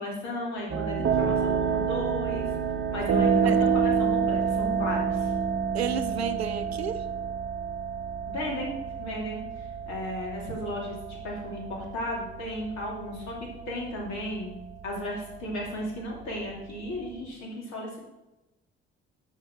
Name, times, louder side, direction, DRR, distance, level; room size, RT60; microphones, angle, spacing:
voice 1, 0.0-2.5 2.9-5.3 8.3-8.7 9.0-14.5 14.8-18.0, left 1 dB, 60° left, -2 dB, 2.8 m, -35 dB
sound 1, 0.7-17.2, right 6 dB, 40° right, 0.8 m, -29 dB
voice 2, 5.7-7.1, right 7 dB, 90° right, 11 dB, 0.5 m, -31 dB
6.4 x 6.3 x 5.9 m, 0.99 s
figure-of-eight pair, 45°, 31 cm